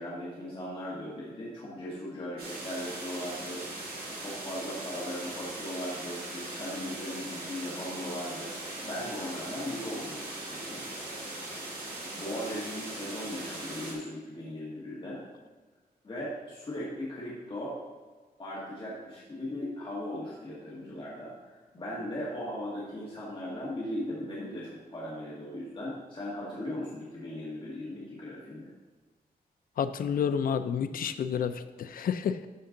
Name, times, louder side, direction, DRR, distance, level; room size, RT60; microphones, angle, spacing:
voice 1, 0.0-3.9 4.2-8.5 8.8-10.8 12.1-15.2 16.0-17.8 18.4-28.7, left 1 dB, 35° left, -7 dB, 1.7 m, -38 dB
sound 1, 2.4-13.9, right 2 dB, 70° right, 2.2 m, -40 dB
voice 2, 29.8-32.5, left 7 dB, 65° left, 11 dB, 0.4 m, -30 dB
12.5 x 4.5 x 3.8 m, 1.3 s
wide cardioid pair, 155°, 16 cm